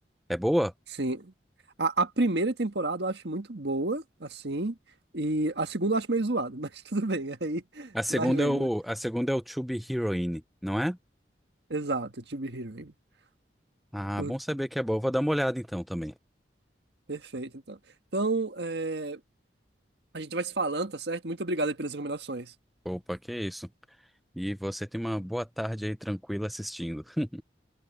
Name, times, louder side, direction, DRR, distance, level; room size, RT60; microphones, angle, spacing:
voice 1, 0.3-0.7 7.9-11.0 13.9-16.1 22.9-23.7 24.4-27.4, equal, ahead, 0.3 m, -30 dB
voice 2, 1.0-1.3 1.8-4.7 5.1-8.7 11.7-12.9 14.2-14.3 17.1-17.8 18.1-19.2 20.1-22.5, right 2 dB, 70° right, 1.6 m, -30 dB
head